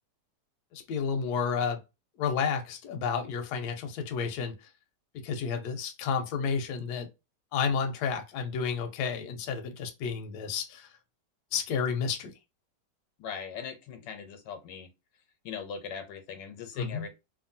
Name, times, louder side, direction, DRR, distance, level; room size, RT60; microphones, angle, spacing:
voice 1, 0.7-1.8 2.2-4.5 5.2-7.1 7.5-10.9 11.5-12.3 16.8-17.0, left 6 dB, 75° left, 1.1 m, -31 dB
voice 2, 13.2-14.9 15.4-17.1, left 7 dB, 90° left, 1.3 m, -40 dB
2.8 x 2.6 x 2.6 m
omnidirectional pair, 1.9 m